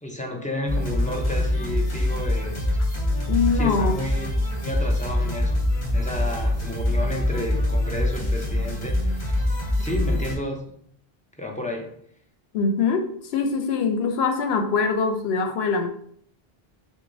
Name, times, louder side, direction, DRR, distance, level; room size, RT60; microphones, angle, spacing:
voice 1, 0.0-2.7 3.5-4.3 4.6-5.6 5.9-9.5 9.8-10.6 11.4-11.9, left 1 dB, 10° left, 0 dB, 0.4 m, -31 dB
sound 1, 0.7-10.3, left 1 dB, 45° left, 1.2 m, -24 dB
voice 2, 3.3-4.0 12.5-15.9, left 5 dB, 85° left, 5 dB, 0.8 m, -23 dB
6.0 x 2.1 x 2.6 m, 0.65 s
omnidirectional pair, 1.0 m